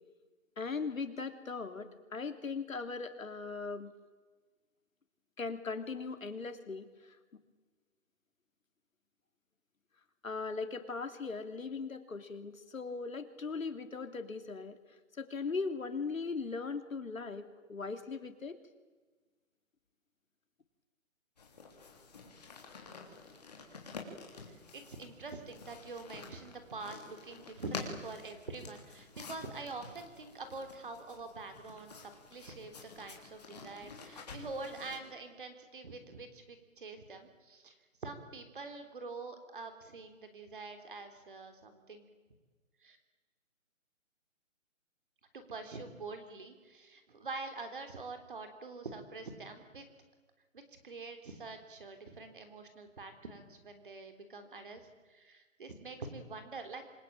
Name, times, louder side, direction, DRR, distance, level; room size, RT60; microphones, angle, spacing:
voice 1, 0.6-3.9 5.4-7.2 10.2-14.8 15.2-18.6, left 4 dB, 80° left, 8 dB, 3.1 m, -39 dB
sound 1, 21.4-35.0, left 4 dB, 30° left, 3.4 m, -49 dB
voice 2, 24.7-37.8 38.0-42.1 42.8-43.0 45.3-49.9 50.5-56.8, right 3 dB, 40° right, 7 dB, 3.5 m, -45 dB
27.0 x 21.5 x 8.9 m, 1.4 s
hypercardioid pair, 180°, 40 cm